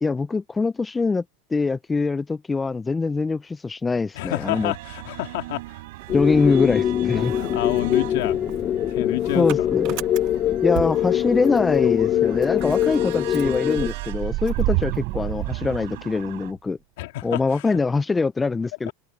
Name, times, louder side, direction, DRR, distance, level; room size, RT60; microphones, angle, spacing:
voice 1, 0.0-1.2 1.5-4.7 6.1-7.3 9.4-9.9 10.6-16.8 17.2-18.9, left 4 dB, 10° left, 0.4 m, -23 dB
voice 2, 4.1-5.6 7.1-8.4 8.9-9.7 17.0-17.8 18.9-19.0, left 19 dB, 70° left, 2.6 m, -29 dB
sound 1, 4.4-16.5, right 19 dB, 70° right, 4.4 m, -41 dB
Motor vehicle (road) / Engine starting, 5.6-6.8 7.1-11.8 12.1-12.2 12.4-16.5, right 20 dB, 50° right, 0.7 m, -31 dB
sound 2, 6.1-13.9, left 11 dB, 35° left, 0.8 m, -23 dB
supercardioid pair, 135°, 0 cm